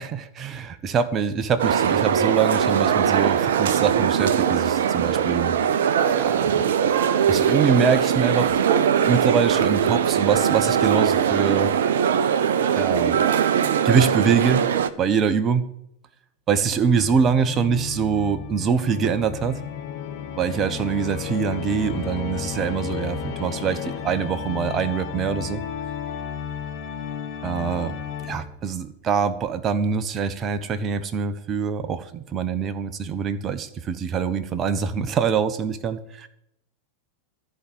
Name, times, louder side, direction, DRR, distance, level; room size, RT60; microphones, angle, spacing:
voice 1, 0.0-5.5 6.1-6.7 7.3-8.6 9.0-11.7 12.7-13.2 13.8-14.7 15.0-15.7 16.5-19.6 20.4-25.6 27.4-27.9 28.2-36.3, right 6 dB, 25° right, 11 dB, 1.0 m, -24 dB
sound 1, 1.6-14.9, right 8 dB, 60° right, 0.7 m, -21 dB
Organ, 16.8-28.7, left 8 dB, 40° left, 1.6 m, -33 dB
14.0 x 5.0 x 9.2 m, 0.76 s
figure-of-eight pair, 90°, 0 cm